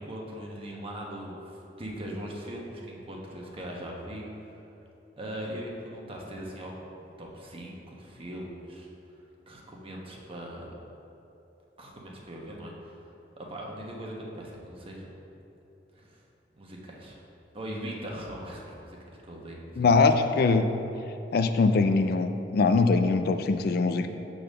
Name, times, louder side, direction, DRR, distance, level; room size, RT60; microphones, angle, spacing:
voice 1, 0.0-4.6 5.2-8.9 9.5-10.7 11.8-13.1 13.4-15.2 15.9-16.2 16.6-17.2 17.5-19.0 19.3-19.8, equal, 30° right, -2 dB, 1.1 m, -40 dB
voice 2, 19.8-20.7 21.3-24.1, left 4 dB, 60° left, 8 dB, 0.3 m, -22 dB
6.9 x 3.8 x 6.5 m, 3.0 s
head